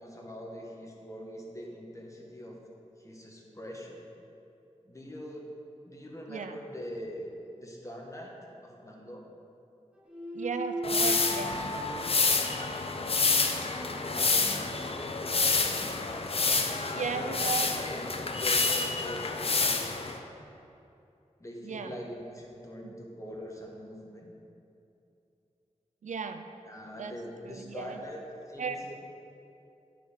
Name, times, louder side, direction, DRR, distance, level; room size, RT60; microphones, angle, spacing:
voice 1, 0.0-2.6 3.0-4.1 4.8-5.5 5.8-7.3 7.6-8.3 8.6-9.3 14.0-14.8 16.2-17.4 17.7-19.9 21.4-24.4 26.6-28.9, equal, 25° left, -1 dB, 1.4 m, -43 dB
Bowed string instrument, 10.0-15.0, right 2 dB, 5° right, 1.0 m, -39 dB
voice 2, 10.3-11.6 13.6-13.7 16.9-17.7 21.6-22.0 22.8-22.9 26.0-26.4 27.0-27.2 27.5-28.0 28.6-28.8, right 5 dB, 90° right, 8 dB, 0.4 m, -35 dB
sound 1, 10.8-20.2, left 3 dB, 50° left, 0.6 m, -28 dB
9.5 x 4.6 x 5.1 m, 2.7 s
wide cardioid pair, 65°, 12 cm